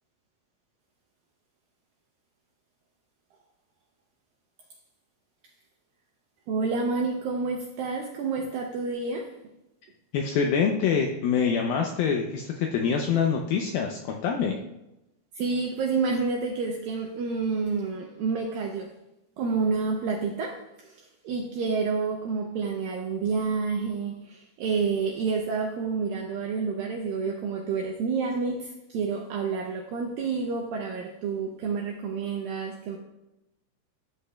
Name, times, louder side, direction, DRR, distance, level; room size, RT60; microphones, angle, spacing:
voice 1, 6.5-9.3 15.4-18.9 19.4-33.0, right 4 dB, 80° right, 1 dB, 2.1 m, -29 dB
voice 2, 10.1-14.6, left 6 dB, 80° left, 2 dB, 2.1 m, -25 dB
12.5 x 7.7 x 2.3 m, 0.91 s
omnidirectional pair, 5.0 m